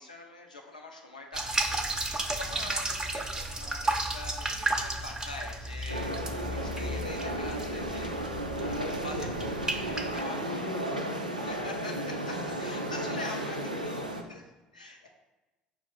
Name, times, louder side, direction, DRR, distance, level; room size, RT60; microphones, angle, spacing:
voice 1, 0.0-9.3 9.7-10.6 11.5-15.1, left 2 dB, 85° left, 1 dB, 0.6 m, -44 dB
sound 1, 1.3-10.2, right 2 dB, 15° right, 0.5 m, -33 dB
sound 2, 5.9-14.2, right 1 dB, 90° right, 0.3 m, -34 dB
voice 2, 10.3-11.7 12.8-13.3 13.7-13.9, left 3 dB, 40° left, 2 dB, 0.6 m, -43 dB
5.1 x 2.4 x 4.2 m, 1.1 s
figure-of-eight pair, 60°, 4 cm